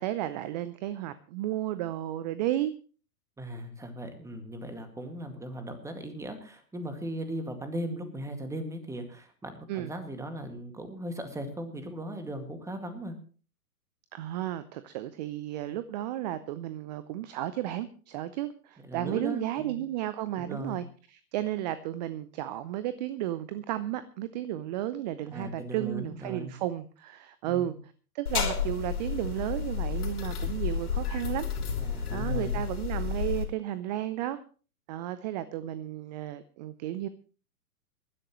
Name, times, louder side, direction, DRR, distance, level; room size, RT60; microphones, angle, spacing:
voice 1, 0.0-2.7 9.7-9.9 14.1-27.7 28.1-31.5 32.1-34.4 34.9-37.1, right 13 dB, 30° right, 14 dB, 0.5 m, -33 dB
voice 2, 3.4-13.1 18.8-19.8 20.4-20.8 25.3-26.5 27.5-27.8 31.8-32.6, right 1 dB, 5° right, 7 dB, 2.0 m, -38 dB
sound 1, 28.3-33.5, left 6 dB, 70° left, 3.7 m, -31 dB
22.5 x 12.0 x 3.1 m, 0.38 s
hypercardioid pair, 115°, 46 cm